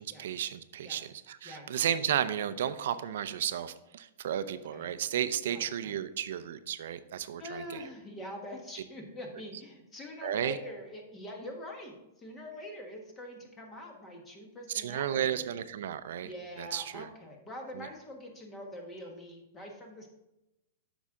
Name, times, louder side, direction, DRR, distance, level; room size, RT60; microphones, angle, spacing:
voice 1, 0.0-7.8 10.2-10.6 14.7-16.3 16.6-17.1 17.8-17.9, right 10 dB, 70° right, 12 dB, 0.5 m, -33 dB
voice 2, 4.5-4.9 5.5-6.0 7.4-15.4 16.2-20.1, left 1 dB, 15° left, 2 dB, 1.4 m, -44 dB
8.3 x 6.1 x 3.7 m, 0.93 s
supercardioid pair, 160°, 0 cm